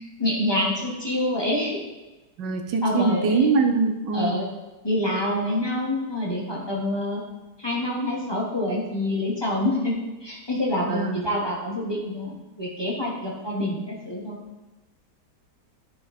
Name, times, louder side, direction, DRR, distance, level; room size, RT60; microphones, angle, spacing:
voice 1, 0.0-1.8 2.8-3.5 4.1-4.5 4.8-7.2 7.6-14.4, left 1 dB, 15° left, -4 dB, 1.5 m, -27 dB
voice 2, 2.4-4.4 10.9-11.2, right 4 dB, 90° right, 6 dB, 1.5 m, -23 dB
12.0 x 4.8 x 4.3 m, 1.1 s
omnidirectional pair, 1.8 m